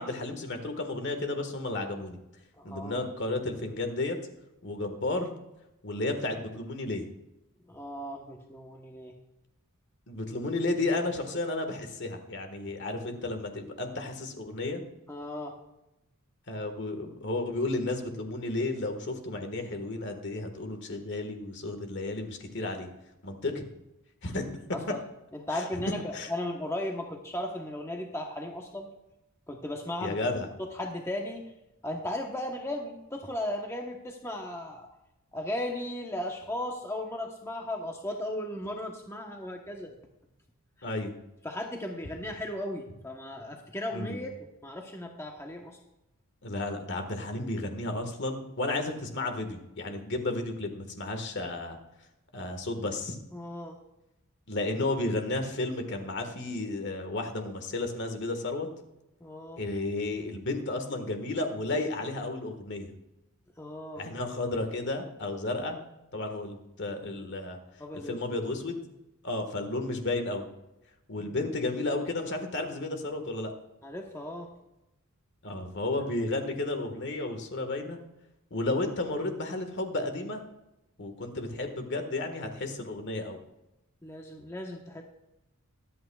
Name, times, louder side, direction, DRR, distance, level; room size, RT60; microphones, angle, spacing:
voice 1, 0.0-2.2 2.6-4.2 4.6-5.3 5.8-7.0 10.1-14.8 16.5-22.9 23.2-23.6 24.2-24.4 24.9-25.0 25.5-25.6 26.1-26.3 30.0-30.5 40.8-41.1 43.9-44.2 46.4-51.8 52.3-53.2 54.5-58.7 59.6-62.9 63.9-65.8 66.1-67.6 68.1-68.8 69.2-70.4 71.1-73.5 75.4-78.0 78.5-80.4 81.0-83.4, left 2 dB, 55° left, 6 dB, 1.6 m, -32 dB
voice 2, 2.6-3.1 7.7-9.2 15.1-15.6 24.7-25.0 25.3-28.9 29.5-30.2 30.6-31.4 31.8-34.9 35.3-39.9 41.4-45.8 53.3-53.8 59.2-59.6 63.6-64.0 67.8-68.6 71.2-71.4 73.8-74.5 84.0-85.0, left 1 dB, 10° left, 1 dB, 1.0 m, -36 dB
24.0 x 8.6 x 2.4 m, 0.92 s
head